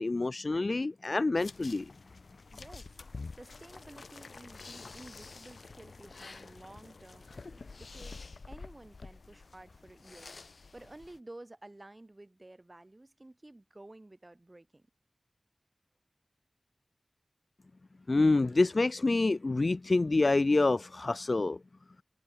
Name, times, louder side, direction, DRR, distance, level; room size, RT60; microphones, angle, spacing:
voice 1, 0.0-1.8 18.1-21.6, left 3 dB, 55° left, 1.0 m, -27 dB
sound 1, 1.4-11.2, left 4 dB, 90° left, 3.3 m, -48 dB
voice 2, 2.5-8.2 8.5-14.9, right 2 dB, 35° right, 7.4 m, -52 dB
wide cardioid pair, 60°, 0 cm